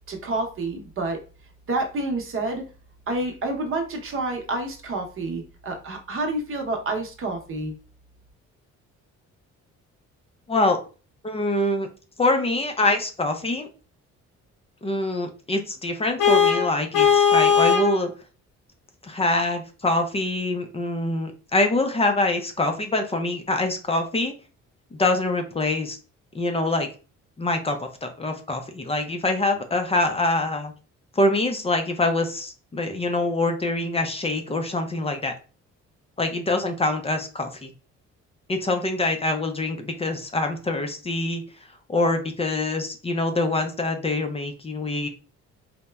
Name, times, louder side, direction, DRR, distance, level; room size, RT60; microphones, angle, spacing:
voice 1, 0.1-1.2 1.7-2.6 3.1-7.7, right 2 dB, 45° right, 2 dB, 0.8 m, -28 dB
voice 2, 10.5-10.8 11.2-11.9 12.2-13.7 14.8-18.1 19.0-24.3 24.9-26.0 26.3-26.9 27.4-30.7 31.2-35.3 36.2-37.7 38.5-41.4 41.9-45.1, left 2 dB, 20° left, 5 dB, 0.4 m, -25 dB
Vehicle horn car horn honking, 16.2-18.0, left 7 dB, 75° left, 0.6 m, -18 dB
2.9 x 2.1 x 2.2 m, 0.35 s
cardioid pair, 90°, 30 cm